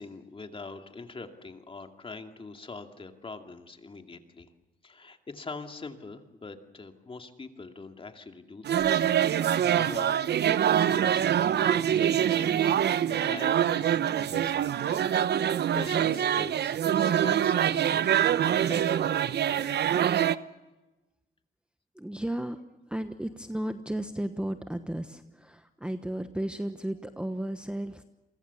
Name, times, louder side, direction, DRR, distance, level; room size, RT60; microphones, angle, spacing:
voice 1, 0.0-4.5 4.8-8.9 9.1-12.8 13.0-18.2 18.5-19.7, left 3 dB, 25° left, 5 dB, 2.4 m, -44 dB
sound 1, 8.6-20.4, right 10 dB, 60° right, 0.8 m, -25 dB
voice 2, 21.9-28.0, right 1 dB, 5° right, 9 dB, 1.1 m, -34 dB
28.0 x 23.5 x 7.1 m, 1.1 s
cardioid pair, 90°, 20 cm